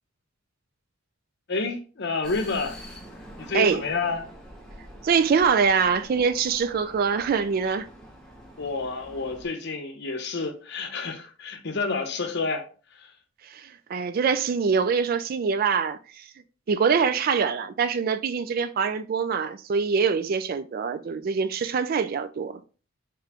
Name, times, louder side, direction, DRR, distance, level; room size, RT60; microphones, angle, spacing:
voice 1, 1.5-2.8 3.4-4.3 8.6-12.7 12.9-13.1, left 3 dB, 60° left, 0.7 m, -29 dB
Vehicle, 2.2-9.5, equal, 5° left, 0.9 m, -46 dB
voice 2, 5.0-7.9 13.4-16.3 16.7-22.5, right 6 dB, 45° right, 0.3 m, -24 dB
4.0 x 3.1 x 2.9 m
head